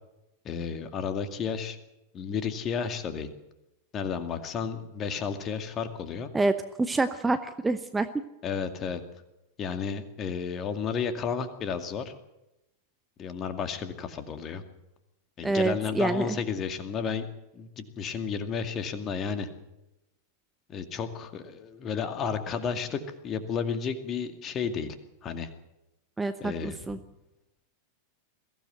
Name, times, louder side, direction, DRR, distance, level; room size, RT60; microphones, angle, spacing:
voice 1, 0.4-1.8 2.1-3.3 3.9-6.3 8.4-9.0 9.6-12.1 13.2-14.6 15.4-17.3 17.5-19.5 20.7-25.0 25.2-25.5 26.4-26.8, left 6 dB, 30° left, 8 dB, 2.3 m, -32 dB
voice 2, 6.3-8.1 15.4-16.3 26.2-27.0, right 3 dB, 10° right, 10 dB, 0.9 m, -27 dB
22.5 x 16.0 x 8.0 m, 0.92 s
figure-of-eight pair, 90°, 0 cm